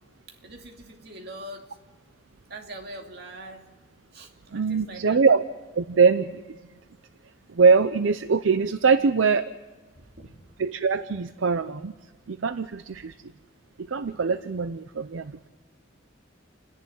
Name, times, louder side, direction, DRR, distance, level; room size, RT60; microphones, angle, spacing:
voice 1, 0.3-1.8 2.5-3.7 4.1-5.2 9.9-10.3, right 1 dB, 55° right, 2 dB, 2.5 m, -42 dB
voice 2, 4.5-5.4 5.8-6.6 7.5-9.5 10.6-11.9 12.3-13.1 13.9-15.5, right 5 dB, 75° right, 11 dB, 0.6 m, -22 dB
29.0 x 11.0 x 9.2 m, 1.3 s
head